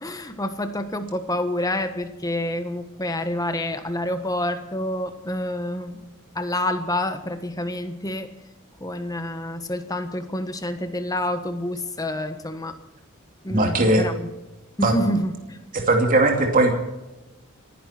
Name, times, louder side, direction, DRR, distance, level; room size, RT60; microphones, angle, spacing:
voice 1, 0.0-6.0 6.3-8.3 8.8-12.7 13.4-14.3 14.8-15.6, left 1 dB, 15° left, 8 dB, 1.4 m, -28 dB
voice 2, 13.5-14.1 14.8-15.2 15.7-16.7, right 2 dB, 40° right, 2 dB, 2.6 m, -19 dB
28.5 x 11.0 x 4.5 m, 1.0 s
head